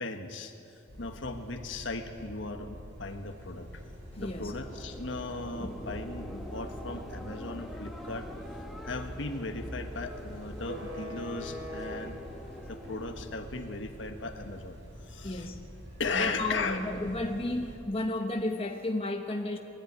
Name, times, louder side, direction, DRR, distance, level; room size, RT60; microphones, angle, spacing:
voice 1, 0.0-3.8 4.2-8.3 8.8-12.1 12.7-15.5 16.0-16.8, left 3 dB, 65° left, 6 dB, 1.5 m, -37 dB
sound 1, 0.9-17.8, equal, 65° right, 5.4 m, -46 dB
sound 2, 4.1-13.5, left 1 dB, ahead, 1.2 m, -44 dB
voice 2, 4.2-4.5 15.2-15.6 16.1-19.6, left 2 dB, 30° left, 3 dB, 1.0 m, -32 dB
21.5 x 14.0 x 9.4 m, 2.7 s
head